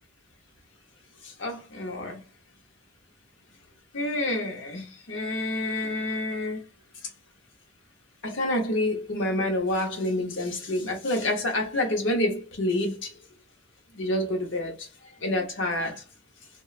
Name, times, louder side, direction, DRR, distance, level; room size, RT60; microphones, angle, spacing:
voice 1, 1.2-2.2 3.9-6.6 8.2-13.1 13.9-14.9 15.2-16.0, left 1 dB, 75° left, 0.8 m, -28 dB
3.0 x 2.2 x 2.4 m
head